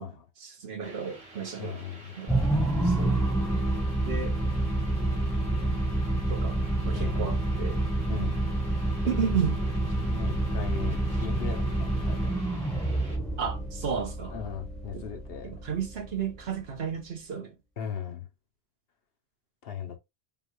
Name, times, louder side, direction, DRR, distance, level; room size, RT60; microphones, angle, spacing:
voice 1, 0.4-1.8 2.2-2.3 2.8-3.2 4.1-4.4 6.3-6.6 6.8-7.8 8.1-8.3 9.0-9.6 13.4-14.4 14.9-15.0 15.4-17.5, right 7 dB, 65° right, 1.2 m, -33 dB
sound 1, 0.8-13.1, right 2 dB, 85° right, 2.0 m, -47 dB
voice 2, 1.6-2.2 6.9-7.2 8.1-8.4 10.0-12.3 14.3-15.5 17.8-18.3 19.6-20.0, left 7 dB, 65° left, 1.0 m, -38 dB
sound 2, 2.3-16.8, right 2 dB, ahead, 0.9 m, -28 dB
5.3 x 2.4 x 3.1 m
omnidirectional pair, 1.1 m